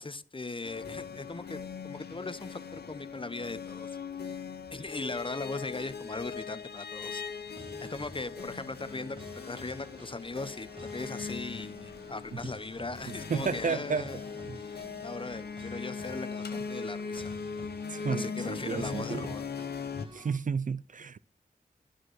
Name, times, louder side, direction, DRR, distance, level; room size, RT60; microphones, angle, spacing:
voice 1, 0.0-3.9 4.2-4.3 4.7-9.2 9.4-14.2 14.5-17.4 18.1-19.4, left 3 dB, 30° left, 0.7 m, -39 dB
sound 1, 0.6-20.1, left 5 dB, 80° left, 0.7 m, -40 dB
sound 2, 7.6-20.4, equal, 30° right, 2.1 m, -51 dB
voice 2, 13.3-14.1 14.5-14.6 17.9-19.3 20.1-21.2, right 6 dB, 50° right, 0.4 m, -32 dB
10.0 x 5.0 x 6.1 m
wide cardioid pair, 55°, 17 cm